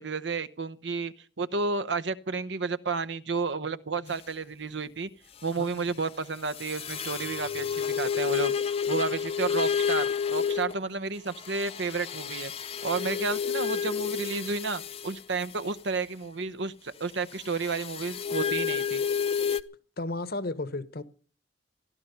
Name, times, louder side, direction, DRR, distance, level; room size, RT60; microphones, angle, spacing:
voice 1, 0.0-5.1 5.4-8.5 8.9-12.5 12.8-19.0, right 4 dB, 75° right, 0.9 m, -31 dB
sound 1, 6.6-10.8 11.4-15.1 17.6-19.6, left 7 dB, 35° left, 0.7 m, -30 dB
voice 2, 20.0-21.0, left 2 dB, 55° left, 1.1 m, -33 dB
16.0 x 11.5 x 6.9 m
head